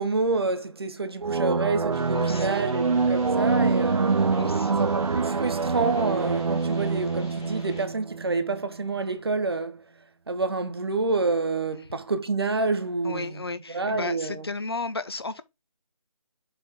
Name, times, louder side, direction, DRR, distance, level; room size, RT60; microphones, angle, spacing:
voice 1, 0.0-4.2 4.8-9.8 10.3-14.5, right 3 dB, 45° right, 1.0 m, -28 dB
sound 1, 1.2-8.6, right 4 dB, 70° right, 0.4 m, -25 dB
sound 2, 1.9-7.8, left 1 dB, 5° left, 0.6 m, -48 dB
voice 2, 2.1-2.6 4.4-4.9 11.7-11.8 13.0-15.4, left 3 dB, 45° left, 0.7 m, -34 dB
7.1 x 4.4 x 3.7 m
figure-of-eight pair, 160°, 18 cm